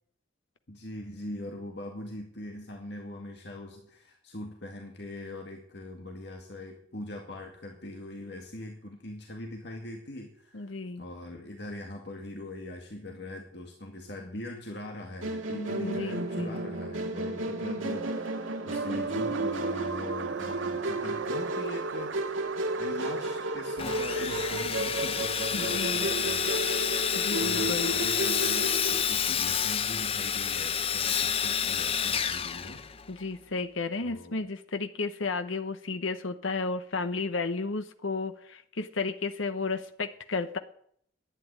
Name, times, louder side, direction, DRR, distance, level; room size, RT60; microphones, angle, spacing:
voice 1, 0.7-22.1 22.8-32.8 34.0-34.4, left 1 dB, 60° left, 1 dB, 2.1 m, -41 dB
voice 2, 10.5-11.0 15.8-16.6 25.5-26.1 27.1-27.9 33.1-40.6, left 3 dB, 85° left, 9 dB, 0.9 m, -33 dB
Musical instrument, 15.2-29.0, right 2 dB, 90° right, 1.8 m, -33 dB
sound 1, 17.9-24.5, right 5 dB, 65° right, 0.7 m, -40 dB
Sawing, 23.8-33.2, left 8 dB, 30° left, 0.6 m, -29 dB
11.5 x 9.5 x 9.7 m, 0.65 s
head